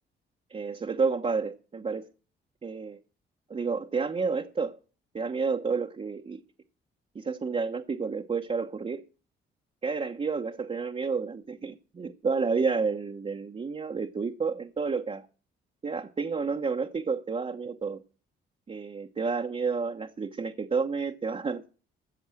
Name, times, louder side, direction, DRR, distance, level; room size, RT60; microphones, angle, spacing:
voice 1, 0.5-2.1 2.6-3.0 3.5-4.8 5.1-6.4 7.1-9.0 9.8-15.3 15.8-18.0 18.7-21.7, right 5 dB, 30° right, 1.1 m, -30 dB
14.5 x 7.1 x 7.7 m
cardioid pair, 90°, 20 cm